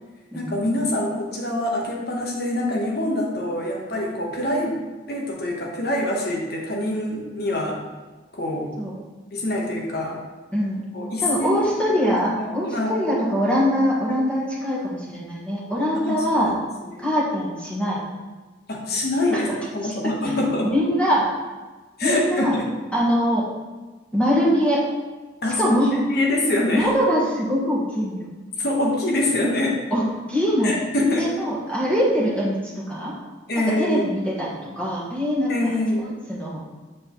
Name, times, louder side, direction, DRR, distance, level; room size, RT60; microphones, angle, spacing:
voice 1, 0.3-4.8 5.0-7.8 8.3-8.8 9.3-10.2 10.9-11.6 12.0-13.0 15.9-16.6 16.8-17.1 18.7-20.7 22.0-22.7 25.4-25.8 26.1-26.9 28.6-29.8 30.6-31.3 33.5-34.0 35.5-36.2, left 1 dB, 65° left, -1 dB, 1.2 m, -25 dB
voice 2, 10.5-10.8 11.2-16.5 17.0-18.0 19.8-19.9 20.2-20.3 20.7-21.2 22.0-22.6 22.9-23.5 24.1-24.9 25.6-26.0 26.7-28.3 29.9-30.7 31.2-33.1 33.6-35.7 36.3-36.6, equal, 5° left, -7 dB, 1.6 m, -23 dB
7.4 x 4.7 x 3.1 m, 1.3 s
head